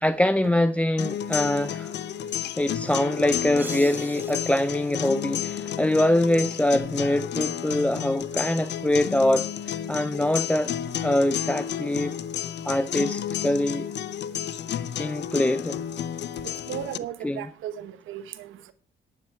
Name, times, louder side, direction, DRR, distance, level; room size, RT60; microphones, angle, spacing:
voice 1, 0.0-2.0 2.6-10.7 11.0-12.2 12.7-13.9 15.0-15.8 17.2-17.5, left 1 dB, 5° left, 0.4 m, -24 dB
sound 1, 1.0-17.0, left 9 dB, 60° left, 0.6 m, -31 dB
sound 2, 3.6-6.2, right 2 dB, 10° right, 1.6 m, -43 dB
voice 2, 16.7-18.7, right 11 dB, 85° right, 1.2 m, -36 dB
11.0 x 8.9 x 4.7 m
cardioid pair, 90°, 20 cm